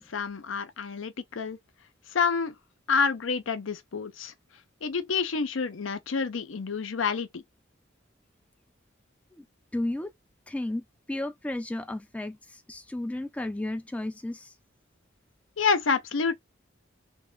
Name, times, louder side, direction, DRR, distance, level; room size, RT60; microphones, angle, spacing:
voice 1, 0.1-1.6 2.1-2.5 2.9-4.3 4.8-7.4 15.6-16.4, left 5 dB, 75° left, 0.6 m, -28 dB
voice 2, 9.7-10.1 10.5-14.5, left 1 dB, 5° left, 0.3 m, -33 dB
3.2 x 3.0 x 3.7 m
head